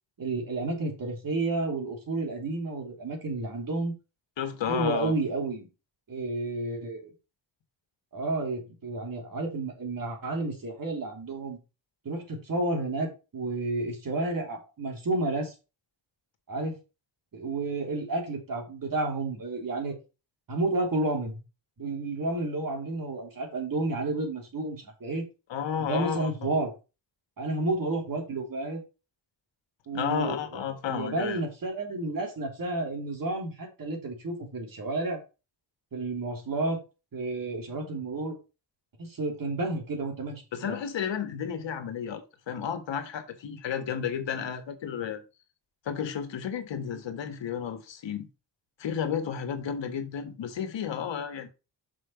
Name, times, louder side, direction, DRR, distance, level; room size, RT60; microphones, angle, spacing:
voice 1, 0.2-3.9 4.7-5.7 6.1-7.1 8.1-11.6 12.0-15.5 16.5-16.8 17.3-19.9 20.5-21.4 21.8-25.2 25.8-26.7 27.4-28.8 29.9-30.4 30.8-35.2 35.9-36.8 37.1-38.4 39.0-40.8, right 2 dB, 50° right, 3.3 m, -31 dB
voice 2, 4.4-5.1 25.5-26.5 29.9-31.4 40.5-45.2 45.8-48.3 48.8-51.5, left 8 dB, 90° left, 1.5 m, -32 dB
6.2 x 5.3 x 5.8 m
wide cardioid pair, 130°, 43 cm